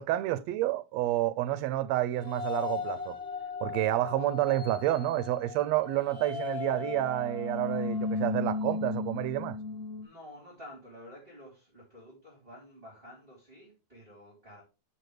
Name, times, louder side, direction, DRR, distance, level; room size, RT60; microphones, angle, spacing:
voice 1, 0.0-3.2 3.6-9.6, right 14 dB, 75° right, 1.8 m, -29 dB
sound 1, 2.1-10.0, left 4 dB, 50° left, 0.7 m, -36 dB
voice 2, 10.0-14.6, left 1 dB, 20° right, 4.1 m, -50 dB
11.0 x 6.4 x 3.3 m
omnidirectional pair, 3.3 m